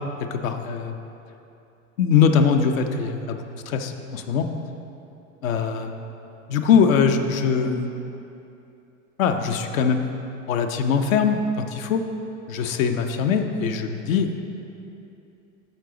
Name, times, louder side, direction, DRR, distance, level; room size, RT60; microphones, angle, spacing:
voice 1, 0.2-1.0 2.0-4.5 5.4-6.0 6.5-7.9 9.2-10.0 10.5-12.0 12.5-14.3, left 6 dB, 80° left, 5 dB, 0.7 m, -22 dB
9.9 x 6.0 x 3.8 m, 2.8 s
hypercardioid pair, 85°, 40 cm